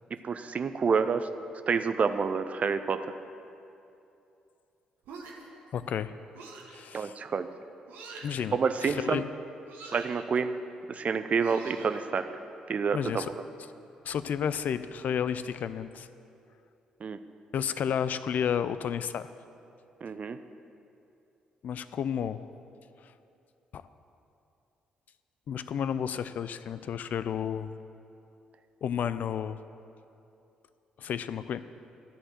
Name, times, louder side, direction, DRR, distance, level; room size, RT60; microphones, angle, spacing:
voice 1, 0.2-1.3 1.7-3.0 6.9-7.5 8.5-9.2 9.9-10.5 10.9-12.3 12.7-13.3 17.0-17.2 20.0-20.4, right 5 dB, 45° right, 10 dB, 0.5 m, -28 dB
sound 1, 5.0-5.6 6.3-6.8 7.9-8.4 9.7-10.2 11.4-12.2, right 4 dB, 65° right, 1.2 m, -45 dB
voice 2, 5.7-6.1 6.7-7.1 8.2-9.3 12.9-13.3 14.0-16.1 17.5-19.3 21.6-22.5 23.7-23.8 25.5-27.7 28.8-29.6 31.0-31.6, left 8 dB, 55° left, 13 dB, 0.4 m, -31 dB
13.0 x 4.3 x 7.4 m, 2.7 s
figure-of-eight pair, 40°, 3 cm